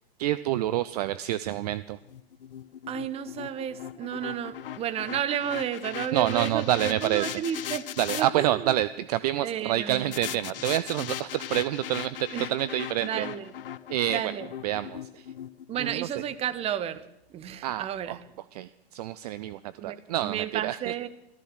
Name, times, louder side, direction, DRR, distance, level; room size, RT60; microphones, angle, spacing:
voice 1, 0.2-2.0 6.1-7.7 8.0-13.3 13.9-14.3 14.6-15.3 15.8-16.1 17.6-18.2 18.5-20.9, right 13 dB, 40° right, 15 dB, 0.5 m, -28 dB
sound 1, 2.1-8.3 10.1-16.3, left 10 dB, 60° left, 0.6 m, -39 dB
voice 2, 2.9-7.8 8.2-8.7 9.4-10.2 12.3-12.5 13.0-13.5 14.1-14.5 15.7-17.0 17.3-18.2 19.8-21.1, right 10 dB, 20° right, 13 dB, 0.8 m, -32 dB
14.5 x 13.5 x 6.4 m, 0.88 s
figure-of-eight pair, 100°, 31 cm